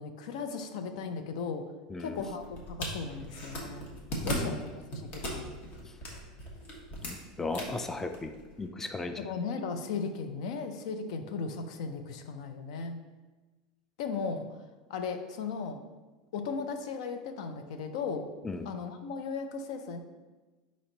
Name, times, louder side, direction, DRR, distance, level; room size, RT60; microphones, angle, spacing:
voice 1, 0.0-1.6 2.0-3.9 4.2-4.6 4.9-5.6 9.2-13.0 14.0-14.5 14.9-15.8 16.3-18.3 18.7-20.0, left 5 dB, 70° left, 7 dB, 0.5 m, -36 dB
voice 2, 1.9-2.2 4.2-4.6 5.9-6.0 7.0-8.3 8.6-9.3 18.4-18.7, left 3 dB, 10° left, 7 dB, 0.3 m, -36 dB
sound 1, 2.2-8.7, equal, 45° left, 1.2 m, -39 dB
4.2 x 3.0 x 3.8 m, 1.2 s
hypercardioid pair, 105°, 4 cm